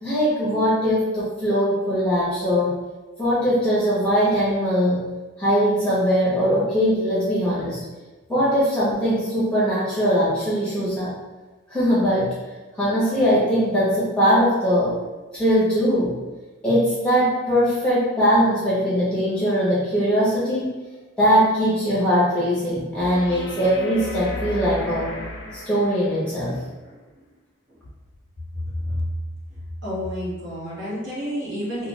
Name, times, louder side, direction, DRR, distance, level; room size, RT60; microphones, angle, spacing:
voice 1, 0.0-2.7 3.2-5.1 5.4-7.8 8.3-11.1 11.7-12.3 12.8-15.0 15.3-16.2 16.6-20.8 21.2-25.1 25.5-26.6, equal, 5° left, -10 dB, 0.8 m, -21 dB
sound 1, 23.0-26.3 29.0-29.1, left 2 dB, 55° left, 0.4 m, -34 dB
voice 2, 28.7-29.1 29.8-31.9, left 1 dB, 60° right, -8 dB, 1.1 m, -29 dB
2.4 x 2.3 x 3.1 m, 1.2 s
head